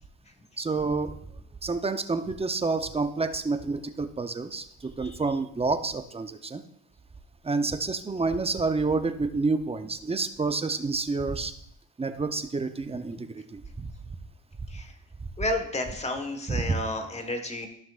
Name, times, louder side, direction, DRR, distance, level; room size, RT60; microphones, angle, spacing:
voice 1, 0.6-1.2 1.6-6.6 7.4-11.5 12.0-13.9 16.5-16.8, right 3 dB, 20° right, 8 dB, 0.7 m, -29 dB
voice 2, 15.4-17.7, left 2 dB, 20° left, 5 dB, 1.4 m, -31 dB
14.0 x 5.9 x 2.5 m, 0.72 s
cardioid pair, 90°, 30 cm